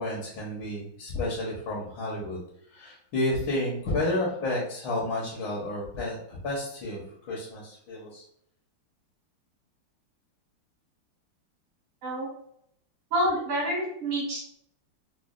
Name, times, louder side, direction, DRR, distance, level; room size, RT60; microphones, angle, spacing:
voice 1, 0.0-2.4 2.7-8.2, left 1 dB, 65° left, -4 dB, 1.6 m, -31 dB
voice 2, 13.1-14.4, right 1 dB, 80° right, -4 dB, 2.6 m, -27 dB
5.1 x 2.3 x 2.4 m, 0.68 s
omnidirectional pair, 2.4 m